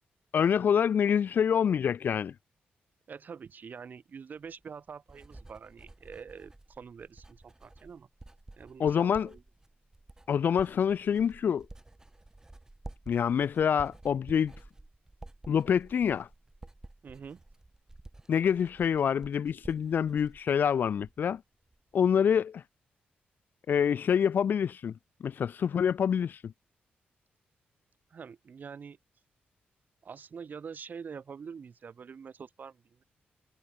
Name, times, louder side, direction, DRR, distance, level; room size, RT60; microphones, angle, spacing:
voice 1, 0.3-2.3 8.8-9.3 10.3-11.7 13.1-14.5 15.5-16.3 18.3-21.4 21.9-22.6 23.7-24.9 25.2-26.5, left 8 dB, 55° left, 0.4 m, -26 dB
voice 2, 3.1-8.1 8.6-9.4 17.0-17.4 28.1-29.0 30.0-33.0, right 6 dB, 50° right, 3.1 m, -45 dB
Writing, 4.5-21.4 21.7-22.1, right 2 dB, 15° right, 5.7 m, -52 dB
cardioid pair, 90°, 4 cm